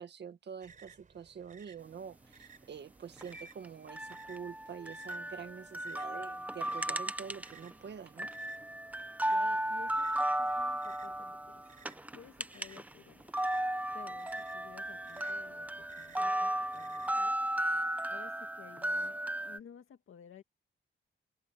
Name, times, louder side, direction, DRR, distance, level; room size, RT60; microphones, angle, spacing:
voice 1, 0.0-8.3, right 7 dB, 55° right, 1.9 m, -46 dB
sound 1, 0.6-17.1, right 5 dB, 40° right, 4.4 m, -60 dB
sound 2, 3.2-7.7 8.1-12.9 13.2-19.6, right 1 dB, 5° right, 0.6 m, -35 dB
voice 2, 6.1-6.5 9.3-13.6 13.9-17.4 18.1-20.4, left 8 dB, 75° left, 2.0 m, -55 dB
open air
wide cardioid pair, 165°, 21 cm